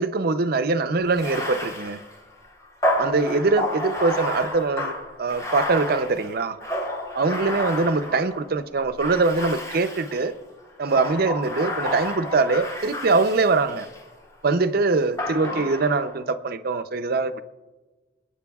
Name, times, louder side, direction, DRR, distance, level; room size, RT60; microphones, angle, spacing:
voice 1, 0.0-2.0 3.0-4.9 5.2-6.6 7.1-10.3 10.8-13.9 14.4-17.4, right 3 dB, 55° right, 0.6 m, -23 dB
Bathtub (filling or washing), 1.1-8.4 9.0-10.3 10.8-14.0 15.2-16.2, left 1 dB, 20° left, 3.5 m, -30 dB
27.5 x 9.7 x 2.4 m
head